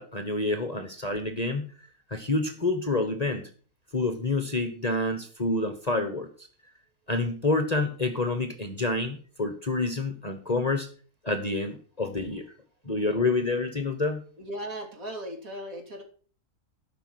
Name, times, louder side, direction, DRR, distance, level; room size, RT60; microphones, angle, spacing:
voice 1, 0.0-1.6 2.1-3.5 3.9-6.3 7.1-10.9 11.2-12.4 12.9-14.2, left 2 dB, 30° left, 7 dB, 1.1 m, -28 dB
voice 2, 14.4-16.0, right 1 dB, 65° right, 2 dB, 3.3 m, -37 dB
12.5 x 6.1 x 6.3 m, 0.42 s
omnidirectional pair, 1.6 m